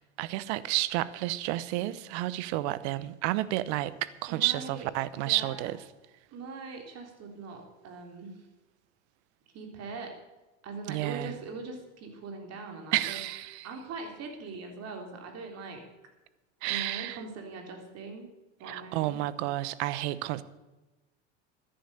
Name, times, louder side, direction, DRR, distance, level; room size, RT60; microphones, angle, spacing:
voice 1, 0.2-5.8 10.9-11.3 12.9-13.7 16.6-17.2 18.7-20.4, right 16 dB, 70° right, 17 dB, 0.9 m, -31 dB
voice 2, 4.3-5.7 6.3-8.4 9.5-10.1 10.6-13.2 13.5-15.8 16.7-18.3 18.6-19.2, right 4 dB, 45° right, 3 dB, 3.7 m, -42 dB
14.0 x 10.5 x 6.7 m, 1.1 s
supercardioid pair, 115°, 36 cm